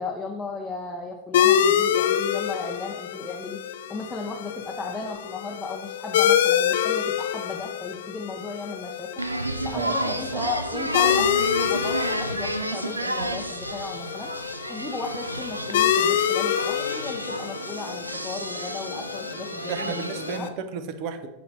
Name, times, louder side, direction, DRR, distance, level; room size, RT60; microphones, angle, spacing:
voice 1, 0.0-9.1 9.6-14.3 14.7-20.5, left 3 dB, 10° left, -1 dB, 0.7 m, -35 dB
sound 1, 1.3-20.5, left 9 dB, 55° left, 0.4 m, -26 dB
sound 2, 9.2-20.4, right 1 dB, 85° right, 0.4 m, -32 dB
voice 2, 9.7-10.4 19.7-21.3, right 6 dB, 45° right, 9 dB, 0.7 m, -33 dB
8.0 x 3.3 x 4.0 m, 0.98 s
figure-of-eight pair, 90°, 0 cm